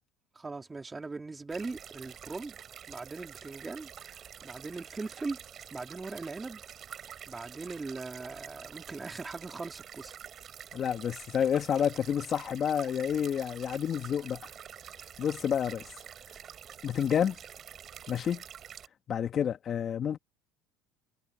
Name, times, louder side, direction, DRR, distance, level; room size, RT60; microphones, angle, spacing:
voice 1, 0.3-2.5 2.9-3.9 4.4-5.4 5.7-6.6 7.3-10.2, right 3 dB, 15° right, 3.2 m, -40 dB
sound 1, 1.5-18.9, right 9 dB, 40° right, 6.5 m, -47 dB
voice 2, 10.7-14.5 15.2-15.9 16.8-17.4 18.1-18.4 19.1-20.2, left 8 dB, 40° left, 1.7 m, -29 dB
supercardioid pair, 100°, 0 cm